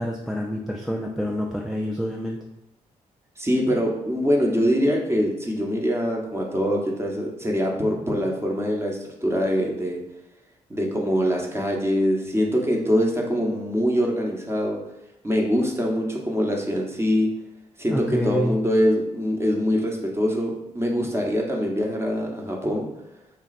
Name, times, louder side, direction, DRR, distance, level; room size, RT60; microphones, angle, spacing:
voice 1, 0.0-2.4 17.9-18.6, equal, ahead, 0 dB, 0.4 m, -27 dB
voice 2, 3.4-10.0 10.7-14.8 15.2-17.3 17.8-22.9, equal, 15° right, -1 dB, 1.0 m, -23 dB
3.2 x 2.3 x 4.1 m, 0.90 s
supercardioid pair, 50°, 15 cm